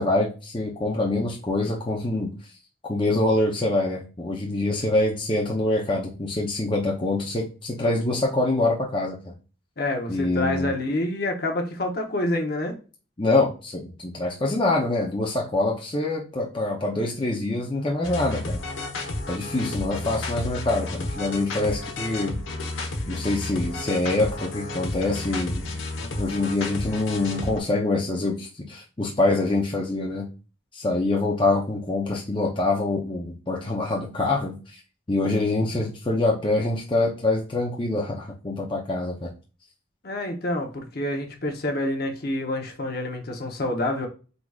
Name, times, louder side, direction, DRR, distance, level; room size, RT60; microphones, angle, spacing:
voice 1, 0.0-2.3 2.9-9.3 10.1-10.7 13.2-18.6 19.3-22.3 23.1-25.7 26.2-30.3 30.7-34.8 35.1-39.3, left 2 dB, 25° left, -2 dB, 0.7 m, -25 dB
voice 2, 9.8-12.7 40.0-44.1, left 1 dB, 50° left, 2 dB, 0.9 m, -27 dB
sound 1, 18.0-27.6, left 2 dB, 75° left, 1.1 m, -32 dB
4.7 x 3.9 x 2.4 m, 0.34 s
head